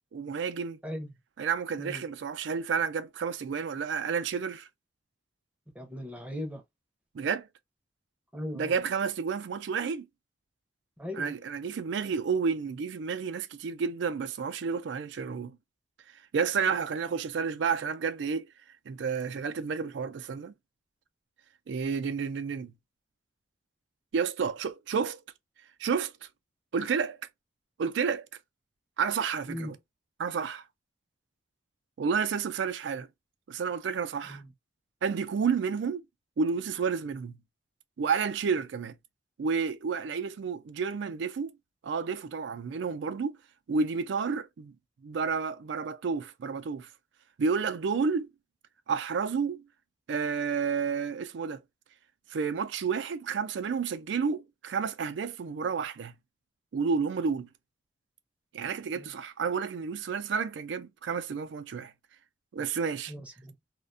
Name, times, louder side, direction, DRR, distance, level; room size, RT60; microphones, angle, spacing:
voice 1, 0.1-0.8 1.4-4.7 7.1-7.5 8.5-10.1 11.2-15.6 16.3-18.5 18.9-20.5 21.7-22.7 24.1-25.2 25.8-26.1 26.7-27.2 27.8-28.3 29.0-29.7 30.2-30.7 32.0-33.1 33.5-34.4 35.0-36.0 36.4-37.4 38.0-38.9 39.4-41.5 41.8-43.4 43.7-44.7 45.0-46.9 47.4-48.3 48.9-49.6 50.1-51.6 52.3-56.1 56.7-57.5 58.5-61.9 62.5-63.1, right 5 dB, 80° right, 0.4 m, -30 dB
voice 2, 5.7-6.6 8.3-8.8 11.0-11.3 29.5-29.8 34.3-34.5 58.9-59.2 63.1-63.5, left 1 dB, 5° right, 0.5 m, -38 dB
2.4 x 2.2 x 2.5 m
head